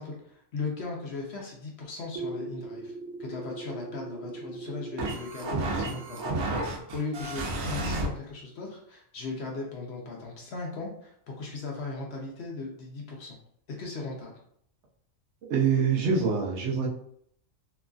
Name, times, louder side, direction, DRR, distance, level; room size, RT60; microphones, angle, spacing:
voice 1, 0.0-2.9 3.2-13.4 13.8-14.3, left 3 dB, 60° left, -1 dB, 0.8 m, -37 dB
sound 1, 2.1-8.1, right 2 dB, 85° right, 1.1 m, -33 dB
voice 2, 15.4-16.9, right 6 dB, 65° right, -1 dB, 0.8 m, -25 dB
2.9 x 2.4 x 2.3 m, 0.67 s
omnidirectional pair, 1.4 m